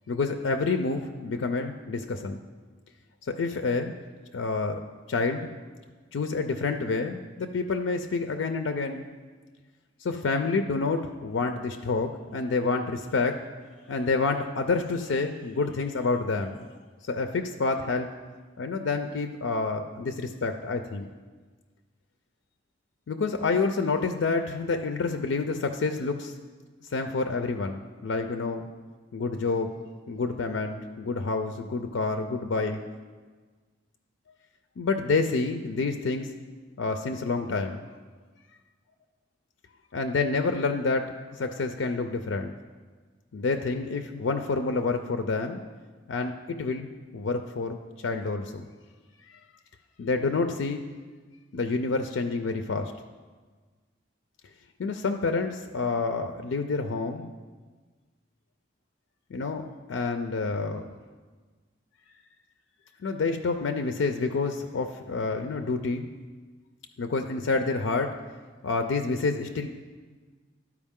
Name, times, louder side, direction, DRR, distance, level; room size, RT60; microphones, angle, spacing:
voice 1, 0.1-2.4 3.3-3.9 4.3-4.8 5.1-5.5 6.1-9.0 10.0-13.4 13.9-16.6 17.0-18.1 18.6-21.1 23.1-26.3 26.9-28.7 29.1-29.7 30.1-32.8 34.8-36.3 36.8-37.8 39.9-42.5 43.3-45.6 46.1-46.9 47.1-47.8 48.0-48.6 49.3-49.4 50.0-50.8 51.5-52.9 54.8-57.3 59.3-60.9 63.0-66.1 67.0-68.2 68.6-69.7, left 3 dB, 85° left, 6 dB, 0.4 m, -28 dB
12.0 x 4.8 x 3.6 m, 1.4 s
head